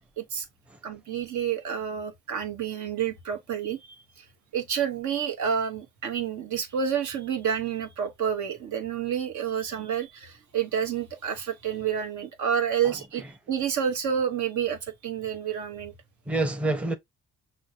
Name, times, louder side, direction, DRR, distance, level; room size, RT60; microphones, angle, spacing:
voice 1, 0.8-4.3 4.5-15.9, right 8 dB, 70° right, 1.1 m, -29 dB
voice 2, 12.8-13.3 16.3-17.0, right 2 dB, 5° right, 0.6 m, -28 dB
6.1 x 2.1 x 2.7 m
cardioid pair, 90°, 30 cm